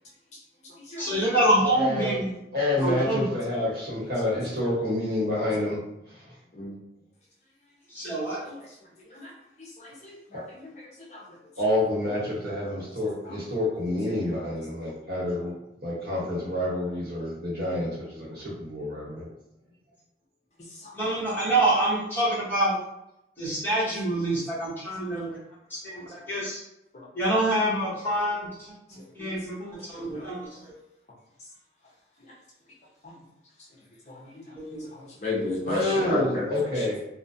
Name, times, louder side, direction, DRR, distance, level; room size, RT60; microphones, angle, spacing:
voice 1, 1.0-2.3 2.8-3.4 7.9-8.4 20.9-22.8 23.4-25.4 25.7-26.6 27.1-28.5 29.1-30.5 34.6-34.9, right 1 dB, 10° left, -10 dB, 0.9 m, -26 dB
voice 2, 1.6-2.2 2.5-5.8 10.3-10.4 11.6-15.5 15.8-19.3 35.6-37.1, left 1 dB, 60° right, -6 dB, 1.0 m, -28 dB
voice 3, 9.8-11.2 13.2-13.3 20.8-20.9 29.2-29.3 29.9-30.3 34.1-34.4 34.7-34.8 35.2-36.9, left 2 dB, 40° left, -5 dB, 0.6 m, -34 dB
2.4 x 2.1 x 2.6 m, 0.84 s
head